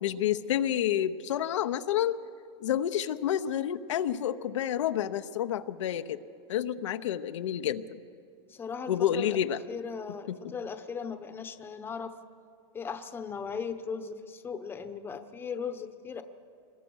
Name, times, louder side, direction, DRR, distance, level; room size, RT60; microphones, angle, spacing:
voice 1, 0.0-2.2 2.6-6.2 6.5-8.0 8.9-9.6 10.3-10.4, left 10 dB, 85° left, 9 dB, 0.9 m, -29 dB
voice 2, 8.5-9.4 9.7-12.2 12.7-16.2, left 6 dB, 15° left, 9 dB, 1.0 m, -38 dB
25.5 x 21.0 x 6.3 m, 2.3 s
supercardioid pair, 145°, 15 cm